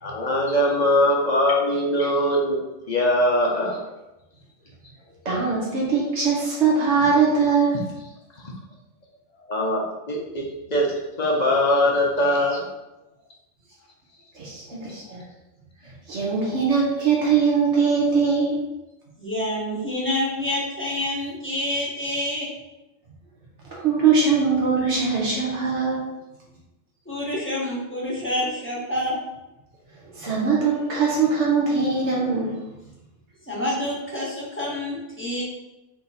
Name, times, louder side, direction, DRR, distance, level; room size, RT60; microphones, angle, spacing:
voice 1, 0.0-2.6 2.9-3.8 9.5-10.9 11.2-12.7, left 1 dB, 40° left, -2 dB, 0.7 m, -21 dB
voice 2, 5.2-7.8 14.3-15.2 16.1-18.6 23.7-26.0 30.1-32.5, right 5 dB, 70° right, -4 dB, 1.2 m, -21 dB
voice 3, 19.2-22.5 27.1-29.2 33.4-35.4, left 1 dB, 10° left, -6 dB, 0.9 m, -27 dB
3.5 x 2.9 x 4.1 m, 1.0 s
omnidirectional pair, 1.3 m